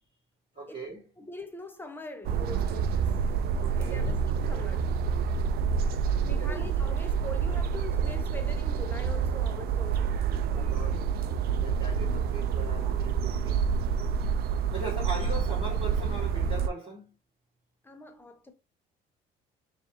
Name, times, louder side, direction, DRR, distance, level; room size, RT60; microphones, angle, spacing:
voice 1, 0.5-1.1 3.6-4.1 6.3-6.7 10.5-11.0 11.6-13.6 14.7-17.1, right 3 dB, 30° right, 1.9 m, -39 dB
voice 2, 1.2-3.1 3.8-4.9 6.2-10.1 17.8-18.5, left 1 dB, 10° left, 0.6 m, -42 dB
sound 1, 2.2-16.7, right 6 dB, 65° right, 0.4 m, -28 dB
5.1 x 2.5 x 2.8 m
cardioid pair, 110°, 17 cm